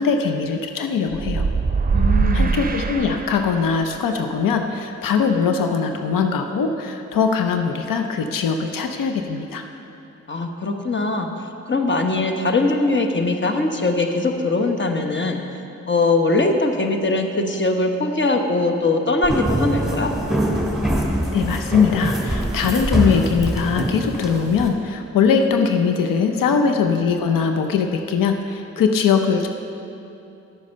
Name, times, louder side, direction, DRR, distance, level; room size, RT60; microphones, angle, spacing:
voice 1, 0.0-1.5 2.3-9.6 21.3-29.5, left 6 dB, 90° left, 6 dB, 0.6 m, -21 dB
sound 1, 1.1-3.8, right 5 dB, 30° right, 0.6 m, -22 dB
voice 2, 1.9-2.5 10.3-11.3 11.7-15.4 15.9-20.1 26.5-26.6, left 2 dB, 35° left, 4 dB, 1.1 m, -21 dB
sound 2, 19.2-24.7, right 1 dB, ahead, 2.5 m, -23 dB
10.5 x 8.4 x 5.4 m, 2.8 s
cardioid pair, 55°, 32 cm